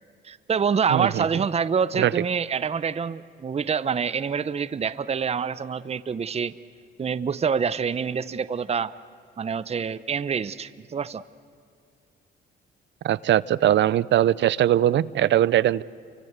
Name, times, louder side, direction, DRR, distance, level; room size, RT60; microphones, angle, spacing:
voice 1, 0.2-6.5 7.0-8.9 9.4-11.2, right 6 dB, 30° right, 15 dB, 0.8 m, -26 dB
voice 2, 0.9-1.3 2.0-2.1 13.0-15.8, right 12 dB, 65° right, 20 dB, 0.6 m, -20 dB
28.5 x 24.5 x 8.1 m, 2.4 s
cardioid pair, 90°, 20 cm